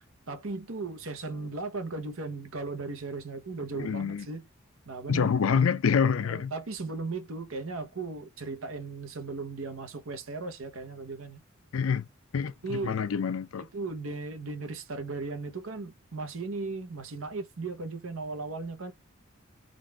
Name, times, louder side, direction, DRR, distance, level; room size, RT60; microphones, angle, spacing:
voice 1, 0.3-4.4 4.9-5.3 6.2-11.4 12.6-13.0 13.6-18.9, right 3 dB, 85° right, 0.9 m, -37 dB
voice 2, 3.7-4.3 5.1-6.5 11.7-12.1 12.3-13.6, left 6 dB, 80° left, 0.4 m, -27 dB
3.8 x 2.5 x 3.3 m
head